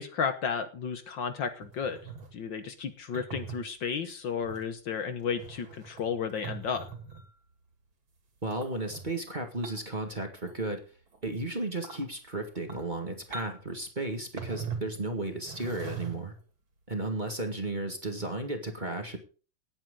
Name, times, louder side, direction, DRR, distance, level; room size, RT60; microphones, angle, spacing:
voice 1, 0.0-2.0 2.3-6.9, left 6 dB, 60° left, 9 dB, 1.8 m, -33 dB
sound 1, 1.6-2.3 3.1-3.6 4.4-4.6 5.2-7.3 8.5-9.1 9.6-10.0 10.3-10.7 11.1-11.2 11.7-12.0 12.6-13.0 13.3-13.8 14.4-15.0 15.4-16.4 17.3-17.4, right 5 dB, 60° right, 3.3 m, -41 dB
voice 2, 8.4-10.8 11.2-16.3 16.9-19.2, right 2 dB, 20° right, 4 dB, 1.8 m, -34 dB
18.0 x 9.1 x 3.8 m, 0.37 s
omnidirectional pair, 2.4 m